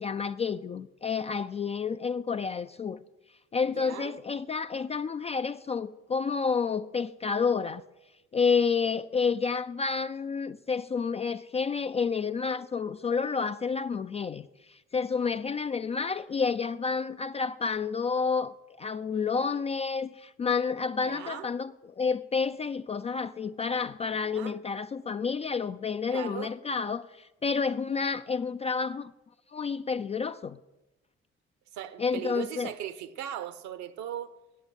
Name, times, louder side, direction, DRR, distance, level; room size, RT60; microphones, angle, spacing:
voice 1, 0.0-3.0 3.5-7.8 8.3-29.1 29.5-30.6 32.0-32.7, left 5 dB, 20° left, 0.3 m, -30 dB
voice 2, 3.7-4.1 21.0-21.5 24.3-24.6 26.1-26.5 31.7-34.4, right 11 dB, 60° right, 0.9 m, -38 dB
8.6 x 8.3 x 9.0 m
figure-of-eight pair, 45°, 34 cm